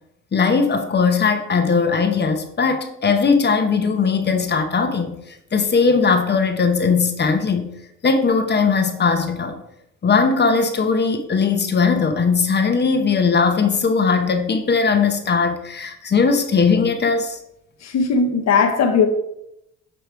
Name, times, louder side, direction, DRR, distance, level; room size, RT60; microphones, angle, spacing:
voice 1, 0.3-7.7 8.0-9.6 10.0-17.4, left 5 dB, 35° left, 7 dB, 0.9 m, -19 dB
voice 2, 17.8-19.1, left 5 dB, 60° left, 5 dB, 1.1 m, -18 dB
6.9 x 3.0 x 4.6 m, 0.80 s
cardioid pair, 90°, 30 cm